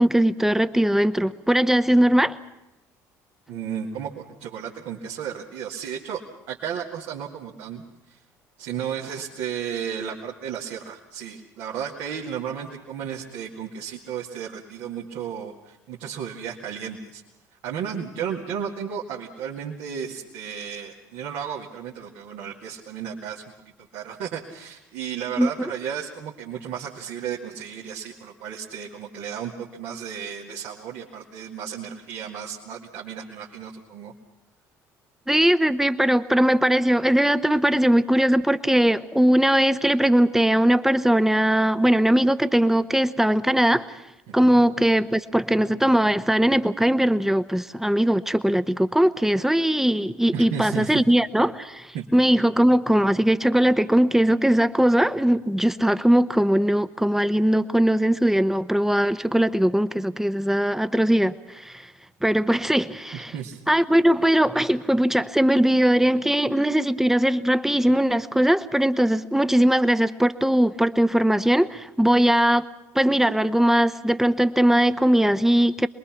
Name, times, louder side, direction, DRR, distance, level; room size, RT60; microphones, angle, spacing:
voice 1, 0.0-2.4 25.4-25.7 35.3-44.0 44.3-61.9 62.2-63.3 63.7-72.7 72.9-75.9, right 1 dB, 5° right, 13 dB, 1.1 m, -20 dB
voice 2, 3.5-6.2 6.5-8.2 8.6-17.2 17.6-34.1 44.3-44.6 50.3-51.1 51.9-52.1 63.1-63.6, right 8 dB, 65° right, -3 dB, 2.1 m, -34 dB
27.0 x 21.5 x 6.0 m, 0.89 s
hypercardioid pair, 55°, 9 cm